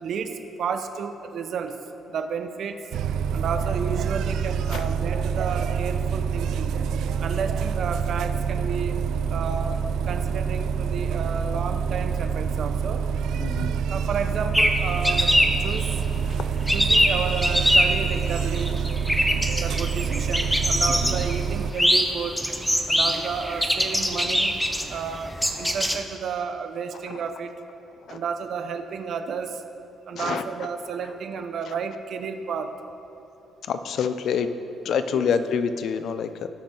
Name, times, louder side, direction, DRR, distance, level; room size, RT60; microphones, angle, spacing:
voice 1, 0.0-1.7 2.1-2.8 3.3-6.8 7.2-8.9 9.3-9.8 10.1-13.0 13.9-15.3 15.6-15.9 16.7-18.8 19.6-22.4 22.9-24.5 24.9-27.5 28.1-29.6 30.1-32.7 35.1-35.3, right 6 dB, 65° right, 7 dB, 0.8 m, -31 dB
sound 1, 2.9-21.7, right 7 dB, 80° right, 0.4 m, -27 dB
voice 2, 13.4-13.7 28.1-28.2 30.2-30.4 33.7-34.5 34.9-36.5, left 6 dB, 70° left, 11 dB, 0.6 m, -26 dB
sound 2, 14.5-26.0, equal, 5° left, 0.9 m, -23 dB
19.0 x 6.6 x 3.9 m, 3.0 s
cardioid pair, 90°, 0 cm